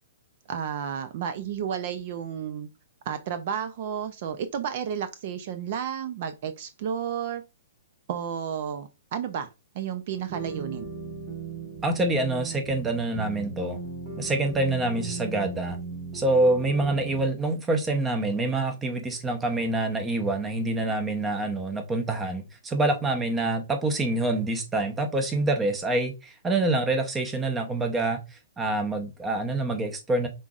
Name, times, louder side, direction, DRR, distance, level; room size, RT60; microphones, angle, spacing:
voice 1, 0.5-2.7 3.1-7.4 8.1-9.5 9.7-10.9, right 8 dB, 45° right, 0.5 m, -32 dB
sound 1, 10.3-17.3, right 3 dB, 25° right, 2.7 m, -37 dB
voice 2, 11.8-13.8 14.2-15.8 16.1-30.3, right 2 dB, 10° right, 0.8 m, -26 dB
5.6 x 3.8 x 2.4 m
hypercardioid pair, 160°, 0 cm